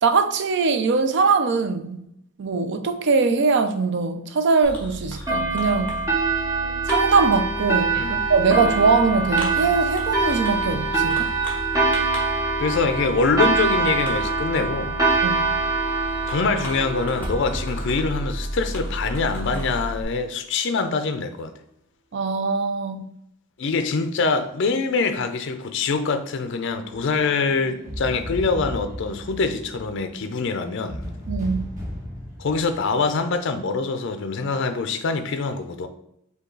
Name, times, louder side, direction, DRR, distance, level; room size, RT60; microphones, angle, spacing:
voice 1, 0.0-2.0 2.4-6.0 6.9-11.3 15.2-15.5 22.1-23.1 31.3-31.7, right 4 dB, 55° right, 0.4 m, -21 dB
Fireworks, 4.6-20.0, equal, 10° left, 1.2 m, -33 dB
sound 1, 5.3-18.4, right 3 dB, 20° right, 1.6 m, -24 dB
voice 2, 12.6-15.0 16.3-21.5 23.6-31.0 32.4-35.9, left 4 dB, 60° left, 0.4 m, -24 dB
sound 2, 26.9-33.6, equal, 35° right, 1.1 m, -36 dB
5.3 x 2.3 x 3.8 m
head